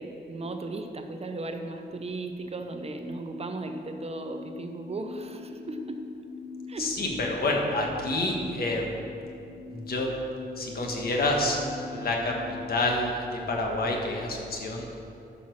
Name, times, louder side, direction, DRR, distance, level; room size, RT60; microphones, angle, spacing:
voice 1, 0.0-6.0 6.7-6.9, right 2 dB, 35° right, 5 dB, 0.6 m, -36 dB
sound 1, 3.0-12.7, left 4 dB, 30° left, 1.9 m, -43 dB
voice 2, 6.8-9.0 9.7-10.1 10.6-11.6 11.9-14.9, left 2 dB, 60° left, 0 dB, 1.5 m, -28 dB
11.5 x 5.8 x 6.3 m, 2.6 s
wide cardioid pair, 160°, 18 cm